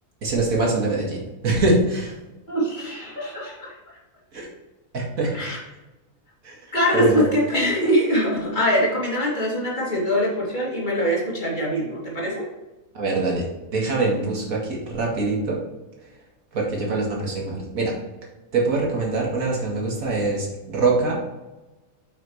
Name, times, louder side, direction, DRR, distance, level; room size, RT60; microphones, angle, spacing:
voice 1, 0.2-2.2 4.3-4.5 4.9-5.4 6.4-6.6 6.9-7.3 12.9-15.6 16.5-17.9 18.5-21.2, right 3 dB, 80° right, -2 dB, 2.3 m, -23 dB
voice 2, 2.5-3.8 5.3-5.6 6.7-12.4, equal, 35° left, -5 dB, 2.6 m, -23 dB
8.2 x 6.0 x 3.2 m, 1.1 s
omnidirectional pair, 1.4 m